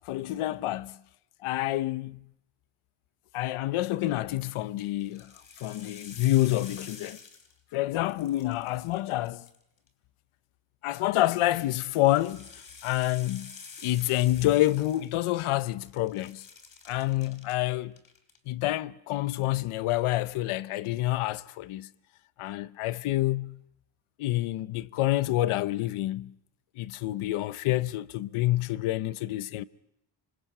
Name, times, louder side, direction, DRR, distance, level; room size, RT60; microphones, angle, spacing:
voice 1, 0.1-1.0 1.4-2.2 3.3-5.3 5.6-7.2 7.7-9.5 10.8-12.5 12.8-13.5 13.8-16.4 16.9-17.9 18.5-21.9 22.4-23.6 24.2-26.3 26.8-29.6, left 16 dB, 85° left, 0.8 m, -28 dB
sound 1, 4.2-4.5 5.0-7.8 8.0-9.9 11.0-15.6 15.8-17.6 17.9-18.4, left 5 dB, 45° left, 3.5 m, -49 dB
27.0 x 25.0 x 5.5 m
cardioid pair, 115°, 48 cm